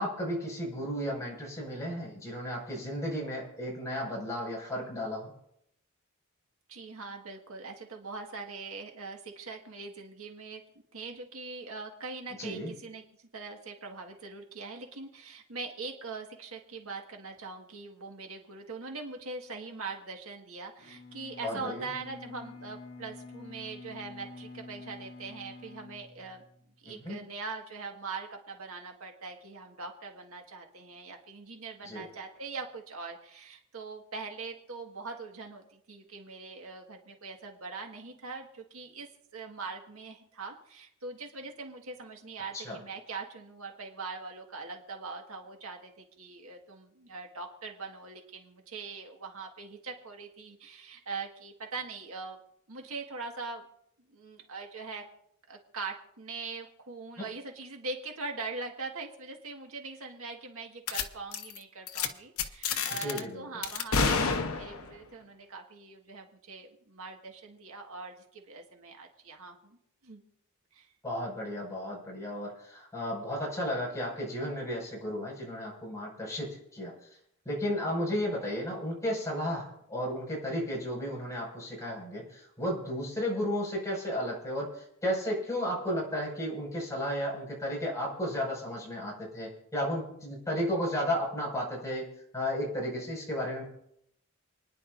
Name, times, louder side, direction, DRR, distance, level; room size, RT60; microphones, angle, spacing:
voice 1, 0.0-5.3 12.4-12.7 21.4-21.8 26.9-27.2 31.8-32.1 42.5-42.8 57.2-57.3 63.0-63.5 71.0-76.9 77.4-92.1 92.3-93.6, equal, 15° left, -4 dB, 5.7 m, -33 dB
voice 2, 6.7-10.6 10.9-26.4 26.8-52.4 52.7-53.6 54.1-55.0 55.5-69.8 70.0-70.2 70.7-70.9, right 4 dB, 80° right, 2 dB, 1.7 m, -42 dB
Bowed string instrument, 20.8-26.8, left 3 dB, 60° left, 1.4 m, -48 dB
sound 1, 60.9-61.0 61.3-61.6 61.9-62.1 62.4-63.2 63.6-65.0, left 5 dB, 90° left, 1.0 m, -29 dB
29.0 x 10.5 x 2.6 m, 0.75 s
head